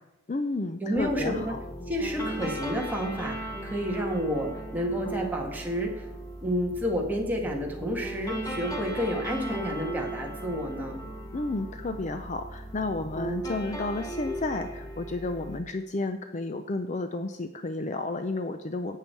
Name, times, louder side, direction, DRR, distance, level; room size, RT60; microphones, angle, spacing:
voice 1, 0.3-1.6 11.3-19.0, left 2 dB, 35° left, 9 dB, 0.5 m, -32 dB
voice 2, 0.8-1.6 1.9-6.1 6.4-11.0, equal, 10° right, -1 dB, 1.8 m, -30 dB
sound 1, 1.0-15.6, right 1 dB, 15° left, 1.3 m, -37 dB
12.0 x 8.6 x 4.6 m, 0.95 s
head